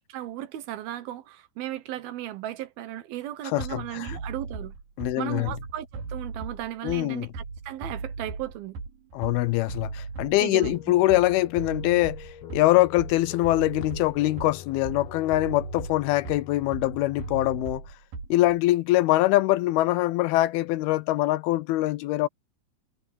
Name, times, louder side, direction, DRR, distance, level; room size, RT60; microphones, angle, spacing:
voice 1, 0.1-4.8 5.2-8.8 10.4-10.8, right 13 dB, 75° right, 2.9 m, -36 dB
voice 2, 3.4-4.2 5.0-5.5 6.8-7.3 9.1-17.8 18.3-22.3, left 17 dB, 80° left, 2.5 m, -23 dB
Bass drum, 3.6-18.6, right 4 dB, 60° right, 5.2 m, -38 dB
sound 1, 10.7-17.6, left 11 dB, 65° left, 1.7 m, -45 dB
omnidirectional pair, 4.6 m